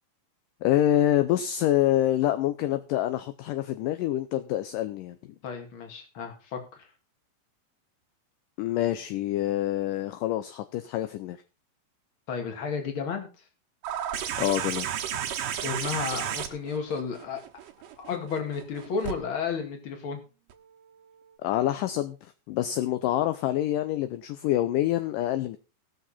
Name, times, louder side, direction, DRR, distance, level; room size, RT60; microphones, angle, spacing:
voice 1, 0.6-5.2 8.6-11.4 14.4-14.9 21.4-25.6, left 13 dB, 80° left, 10 dB, 2.0 m, -26 dB
voice 2, 5.4-6.9 12.3-13.3 15.6-17.4 18.0-20.2, left 6 dB, 40° left, 4 dB, 2.4 m, -32 dB
sound 1, 13.8-19.1 20.5-20.6, right 9 dB, 70° right, 2.6 m, -33 dB
19.0 x 6.4 x 4.2 m, 0.33 s
omnidirectional pair, 4.3 m